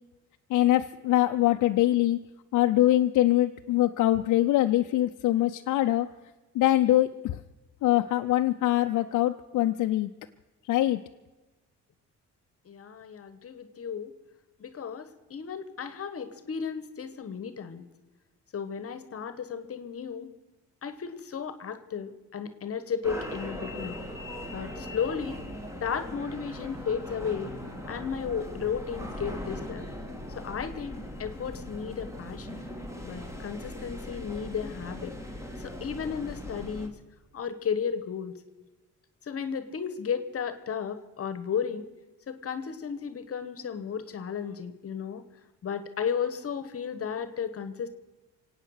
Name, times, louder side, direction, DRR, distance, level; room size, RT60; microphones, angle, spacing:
voice 1, 0.5-2.2 2.5-6.1 6.5-7.4 7.8-10.1 10.7-11.0, left 14 dB, 75° left, 6 dB, 0.6 m, -23 dB
voice 2, 12.7-14.1 14.6-17.8 18.5-20.3 20.8-24.0 24.5-25.4 25.8-27.5 27.9-29.8 30.4-30.9 31.2-32.6 33.0-35.1 35.6-37.0 37.3-38.4 39.3-41.9 42.3-45.2 45.6-47.9, left 7 dB, 50° left, 12 dB, 1.2 m, -34 dB
sound 1, 23.0-36.9, left 1 dB, 10° right, 2.2 m, -39 dB
24.0 x 8.9 x 6.4 m, 1.2 s
cardioid pair, 90°, 30 cm